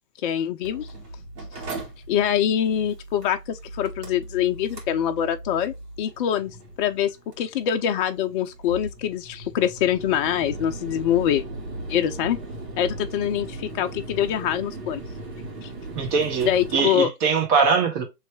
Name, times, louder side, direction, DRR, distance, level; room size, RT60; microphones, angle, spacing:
voice 1, 0.2-0.9 2.1-7.1 7.4-11.4 11.9-12.4 12.8-15.0 15.6-15.7 16.4-17.1, left 10 dB, 35° left, 0.4 m, -24 dB
Mechanical fan, 0.6-16.7, right 2 dB, 75° right, 1.9 m, -38 dB
voice 2, 15.9-18.0, right 5 dB, 40° right, 1.6 m, -22 dB
3.2 x 3.1 x 4.4 m
hypercardioid pair, 115°, 48 cm